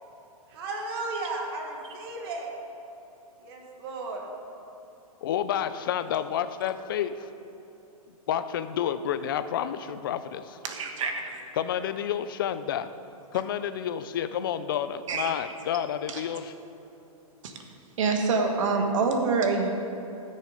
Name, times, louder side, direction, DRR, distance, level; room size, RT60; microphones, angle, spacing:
voice 1, 0.5-2.5 3.4-4.2, right 3 dB, 40° right, 1 dB, 1.6 m, -34 dB
voice 2, 5.2-7.3 8.3-10.6 11.6-12.9 13.3-16.5, left 9 dB, 35° left, 12 dB, 0.4 m, -30 dB
voice 3, 10.6-11.3 15.1-15.3 16.1-16.2 17.4-17.5 18.0-19.9, right 4 dB, 55° right, 4 dB, 1.3 m, -26 dB
13.5 x 6.6 x 4.9 m, 2.9 s
hypercardioid pair, 165°, 19 cm